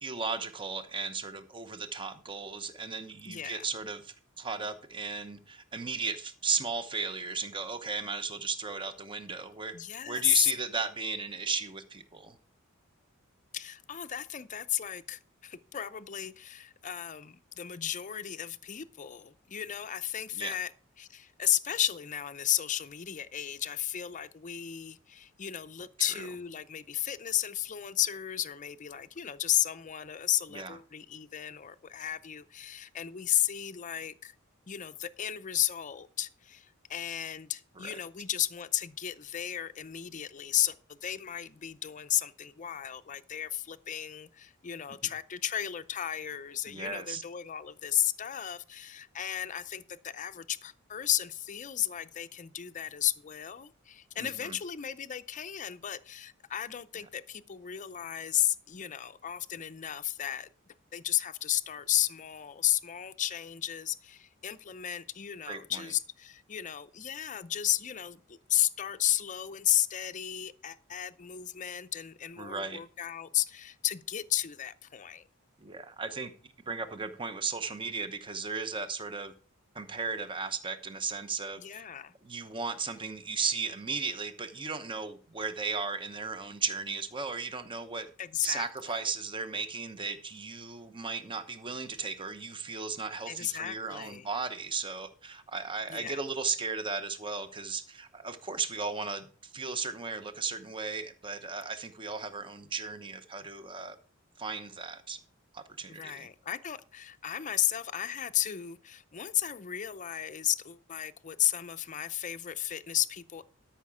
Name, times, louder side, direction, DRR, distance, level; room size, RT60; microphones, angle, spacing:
voice 1, 0.0-9.7 10.1-12.4 20.3-20.6 30.5-30.8 37.8-38.0 46.7-47.2 54.2-54.5 65.5-65.9 72.4-72.8 75.6-76.3 76.7-79.3 79.7-81.9 82.2-88.1 88.4-104.0 104.4-105.2 105.5-106.3, right 4 dB, 25° right, 0.8 m, -36 dB
voice 2, 3.3-3.7 9.7-10.5 13.5-20.7 21.0-34.3 34.7-75.3 81.6-82.1 88.2-88.7 93.3-94.3 95.9-96.2 105.9-113.4, left 11 dB, 35° left, 0.5 m, -33 dB
12.5 x 5.7 x 4.8 m
head